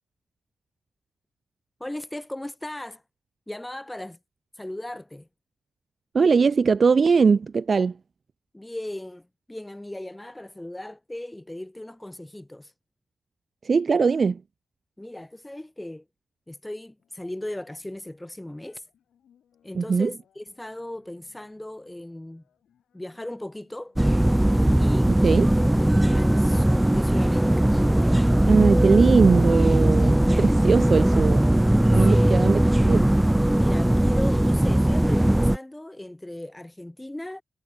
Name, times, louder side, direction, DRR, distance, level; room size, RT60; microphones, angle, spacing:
voice 1, 1.8-3.0 3.5-4.2 4.5-5.3 8.5-12.7 15.0-16.0 16.5-18.9 19.6-22.4 22.9-24.0 24.8-25.9 26.1-27.7 32.1-32.3 33.5-37.4, left 1 dB, 15° left, 0.9 m, -37 dB
voice 2, 6.1-8.0 13.6-14.4 19.7-20.1 25.1-25.5 28.5-31.4 31.9-33.1, right 5 dB, 55° right, 0.6 m, -21 dB
sound 1, 17.0-24.2, left 9 dB, 80° left, 7.2 m, -66 dB
sound 2, 24.0-35.6, right 1 dB, 10° right, 0.3 m, -19 dB
supercardioid pair, 45°, 0 cm